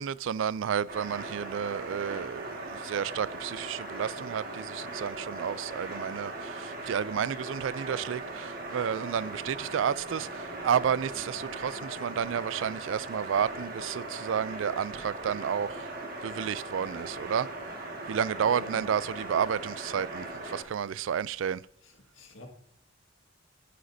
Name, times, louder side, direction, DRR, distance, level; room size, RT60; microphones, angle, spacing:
voice 1, 0.0-15.9 16.2-17.5 18.1-21.6, right 8 dB, 75° right, 0.3 m, -31 dB
sound 1, 0.9-20.6, right 2 dB, 50° right, 1.8 m, -39 dB
voice 2, 18.4-18.9 21.8-22.5, left 1 dB, 85° left, 1.8 m, -46 dB
10.0 x 9.9 x 2.7 m
head